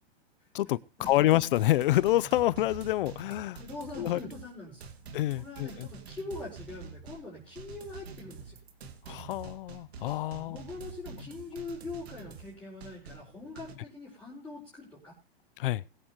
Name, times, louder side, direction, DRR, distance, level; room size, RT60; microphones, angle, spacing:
sound 1, 1.0-13.7, right 5 dB, 80° right, 2.8 m, -47 dB
voice 1, 1.1-3.6 4.0-4.2 5.1-5.9 9.1-10.6 15.6-15.8, left 15 dB, 55° left, 0.6 m, -27 dB
voice 2, 3.6-8.6 10.4-15.1, left 3 dB, 5° left, 5.0 m, -43 dB
21.0 x 9.0 x 3.0 m
hypercardioid pair, 155°, 31 cm